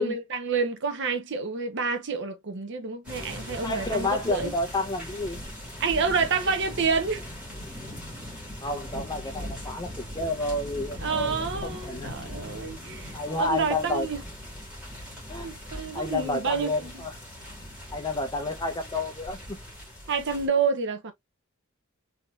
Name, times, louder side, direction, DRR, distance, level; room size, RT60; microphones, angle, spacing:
voice 1, 0.0-4.5 5.8-7.2 11.0-14.2 15.4-16.9 20.1-21.1, right 5 dB, 55° right, 0.7 m, -28 dB
sound 1, 3.0-20.5, left 1 dB, 5° right, 1.5 m, -40 dB
voice 2, 3.6-5.4 8.6-12.1 13.1-14.1 15.3-15.5 15.9-17.1 17.9-19.6, left 2 dB, 20° left, 0.5 m, -30 dB
3.5 x 2.7 x 2.2 m
head